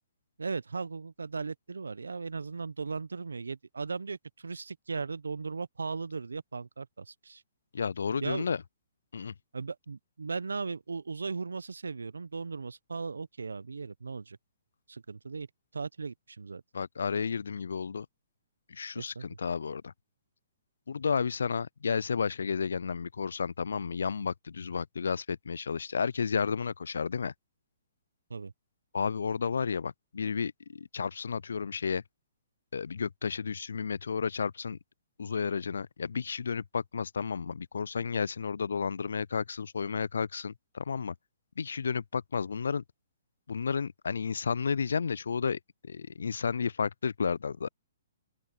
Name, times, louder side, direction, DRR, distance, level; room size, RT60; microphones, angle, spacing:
voice 1, 0.4-7.4 8.2-8.5 9.5-14.4 14.9-15.5 15.7-16.6 18.9-19.4 28.3-28.5, right 4 dB, 85° right, 0.8 m, -37 dB
voice 2, 7.7-8.6 9.1-9.3 16.7-18.1 18.7-19.9 20.9-27.3 28.9-32.0 32.7-34.8 35.2-41.1 41.6-42.8 43.5-47.7, left 6 dB, 75° left, 0.3 m, -32 dB
open air
hypercardioid pair, 130°, 0 cm